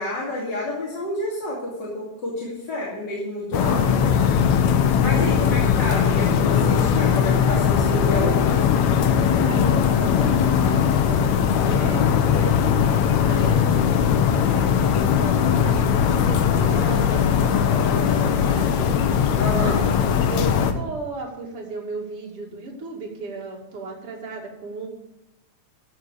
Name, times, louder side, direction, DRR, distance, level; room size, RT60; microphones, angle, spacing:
voice 1, 0.0-4.1 4.9-8.6 19.4-19.8, left 1 dB, 40° left, -6 dB, 3.1 m, -29 dB
sound 1, 3.5-20.7, left 7 dB, 75° left, 2.2 m, -19 dB
voice 2, 5.4-5.8 9.2-12.7 13.2-18.9 19.6-24.9, right 3 dB, 50° right, -2 dB, 3.2 m, -35 dB
sound 2, 15.6-20.7, right 1 dB, ahead, 1.1 m, -41 dB
14.5 x 6.3 x 6.8 m, 0.90 s
omnidirectional pair, 3.4 m